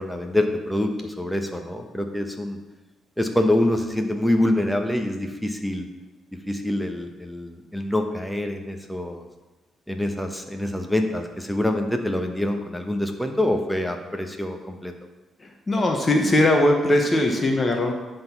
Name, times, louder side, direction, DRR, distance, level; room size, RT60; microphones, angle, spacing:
voice 1, 0.0-2.6 3.2-5.9 6.5-9.2 9.9-14.9, left 1 dB, 5° left, 4 dB, 1.0 m, -25 dB
voice 2, 15.4-17.9, left 1 dB, 25° left, 2 dB, 1.0 m, -20 dB
10.5 x 3.9 x 5.8 m, 1.1 s
cardioid pair, 90°, 0 cm